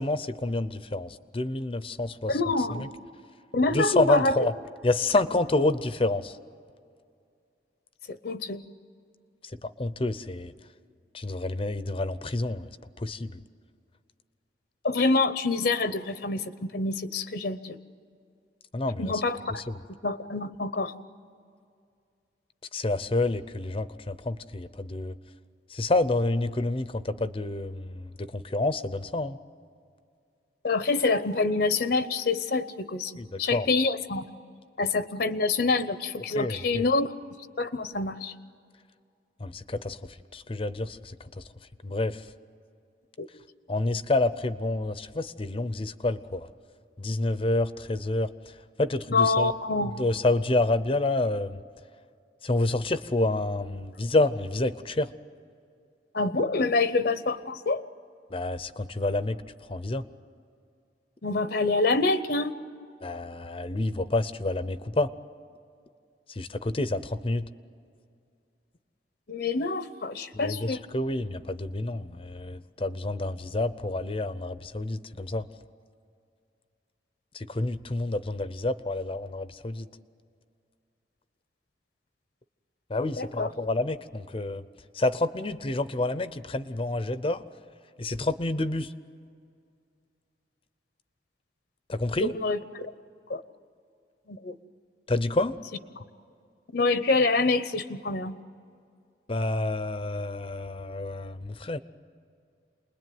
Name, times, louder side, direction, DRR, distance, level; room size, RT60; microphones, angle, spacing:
voice 1, 0.0-2.4 2.8-2.9 3.7-4.5 4.8-6.4 9.4-10.5 11.1-12.7 13.0-13.4 18.7-19.2 19.6-19.8 22.7-25.1 25.7-29.4 33.2-33.7 36.3-36.8 39.4-41.4 41.8-42.2 43.7-46.5 47.0-48.3 48.8-49.5 50.0-51.6 52.4-55.1 58.3-59.4 59.7-60.1 63.0-65.1 66.3-67.5 70.3-75.5 77.3-79.9 82.9-84.6 84.9-87.4 88.0-88.9 91.9-92.3 95.1-95.6 99.3-101.8, left 2 dB, 30° left, 13 dB, 0.7 m, -28 dB
voice 2, 2.3-2.9 3.5-4.3 8.1-8.6 14.8-17.8 19.0-19.6 20.0-20.9 30.6-33.1 33.4-34.2 34.8-37.1 37.6-38.3 43.2-43.3 49.1-49.9 56.1-57.8 61.2-62.6 69.3-70.8 83.2-83.5 92.2-92.8 93.3-93.4 94.3-94.5 96.7-98.4, left 3 dB, 60° left, 12 dB, 0.8 m, -26 dB
28.5 x 21.0 x 9.4 m, 2.3 s
head